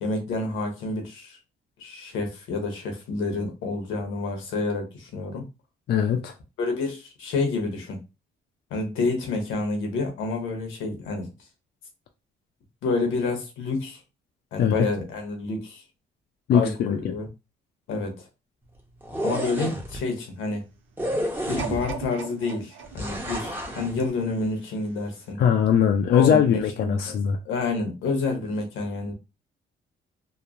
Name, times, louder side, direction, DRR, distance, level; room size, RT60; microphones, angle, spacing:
voice 1, 0.0-1.4 1.8-5.5 6.6-8.0 8.7-11.3 12.8-14.0 14.5-15.8 16.5-17.3 17.9-18.2 19.2-20.6 21.5-25.4 26.1-27.2 27.4-29.1, left 3 dB, 85° left, 0.9 m, -29 dB
voice 2, 5.9-6.3 14.6-14.9 16.5-17.0 25.4-27.4, left 8 dB, 55° left, 0.4 m, -20 dB
sound 1, 19.0-20.0 21.0-22.0 22.9-23.9, equal, 10° right, 0.8 m, -30 dB
sound 2, 21.6-24.6 25.2-25.3, right 7 dB, 90° right, 0.5 m, -39 dB
3.0 x 2.1 x 2.5 m
cardioid pair, 90°, 20 cm